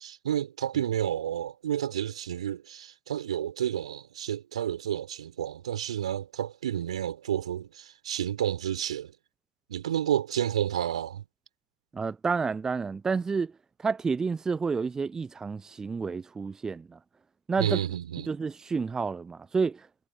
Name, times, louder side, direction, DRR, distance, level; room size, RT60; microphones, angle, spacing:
voice 1, 0.0-9.1 9.7-11.2 17.6-18.3, right 10 dB, 70° right, 3.4 m, -30 dB
voice 2, 11.9-13.5 13.8-17.0 17.5-17.8 18.3-19.9, right 5 dB, 15° right, 0.4 m, -30 dB
figure-of-eight pair, 80°, 4 cm